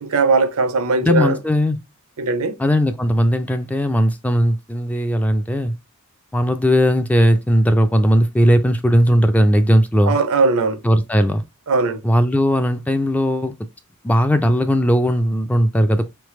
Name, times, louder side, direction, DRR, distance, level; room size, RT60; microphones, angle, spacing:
voice 1, 0.0-1.4 2.2-2.6 10.0-10.8 11.7-12.0, right 3 dB, 70° right, 0.6 m, -19 dB
voice 2, 1.0-1.8 2.6-5.7 6.3-10.2 10.8-11.4 12.0-13.5 14.0-16.1, equal, 5° left, 0.3 m, -17 dB
3.9 x 3.3 x 3.0 m
head